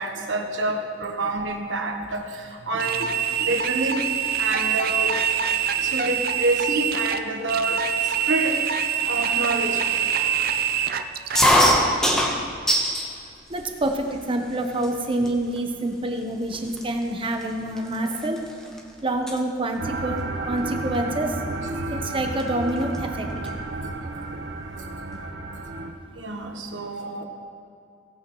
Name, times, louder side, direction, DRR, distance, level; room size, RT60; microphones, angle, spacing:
voice 1, 0.0-5.2 5.8-11.3 21.8-21.9 23.3-23.4 23.8-24.0 24.3-24.4 25.1-25.2 25.6-27.2, right 2 dB, 90° right, 3 dB, 1.2 m, -29 dB
sound 1, 2.8-11.5, right 8 dB, 55° right, 0.5 m, -25 dB
sound 2, 11.4-13.1 13.5-14.2 14.8-14.9 15.2-15.6 16.2-16.3 16.5-18.8 19.1-19.4 20.7-21.0 22.1-22.2 22.4-22.5 22.8-23.6, equal, 5° left, 1.1 m, -22 dB
voice 2, 13.5-18.4 19.0-21.4 21.9-23.3, right 1 dB, 30° right, 4 dB, 0.9 m, -27 dB
sound 3, 19.8-25.9, right 2 dB, 70° right, 0.9 m, -32 dB
16.5 x 9.1 x 3.1 m, 2.5 s
head